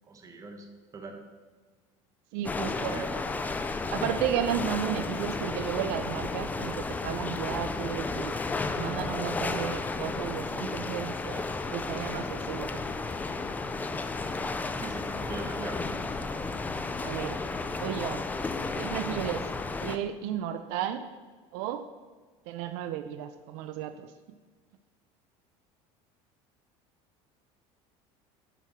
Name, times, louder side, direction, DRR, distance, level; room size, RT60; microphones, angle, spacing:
voice 1, 0.1-0.7 0.9-1.2 2.5-3.3 14.8-16.0, right 3 dB, 25° right, 4 dB, 1.2 m, -41 dB
voice 2, 2.3-3.0 3.9-8.4 8.7-13.0 17.0-17.4 17.7-18.3 18.8-19.4 19.8-21.1 21.5-21.8 22.5-24.1, right 11 dB, 75° right, 9 dB, 0.6 m, -33 dB
sound 1, 2.4-20.0, left 3 dB, 10° left, 0.4 m, -33 dB
9.9 x 4.8 x 5.9 m, 1.4 s
cardioid pair, 150°, 14 cm